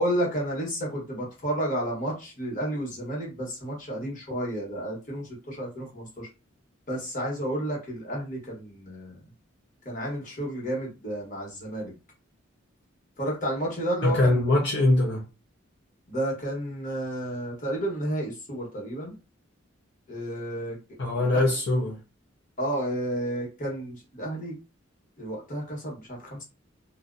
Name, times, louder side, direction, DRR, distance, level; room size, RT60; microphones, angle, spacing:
voice 1, 0.0-6.3 6.9-9.2 9.8-11.9 13.2-14.4 16.1-19.1 20.1-21.4 22.6-24.6 25.2-26.4, right 1 dB, 40° left, 1.0 m, -31 dB
voice 2, 14.0-15.2 21.0-22.0, left 2 dB, 60° left, 0.5 m, -22 dB
2.6 x 2.1 x 2.4 m
head